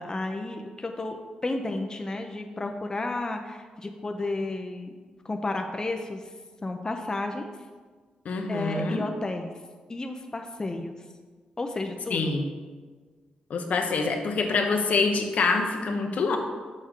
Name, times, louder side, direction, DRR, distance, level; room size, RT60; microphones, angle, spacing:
voice 1, 0.0-4.9 5.2-6.2 6.6-7.5 8.5-9.5 9.9-11.0 11.6-12.3, left 2 dB, 25° left, 4 dB, 0.6 m, -32 dB
voice 2, 8.2-9.0 12.1-12.5 13.5-16.4, left 4 dB, 70° left, 4 dB, 0.9 m, -25 dB
6.6 x 6.5 x 3.7 m, 1.4 s
cardioid pair, 75°, 3 cm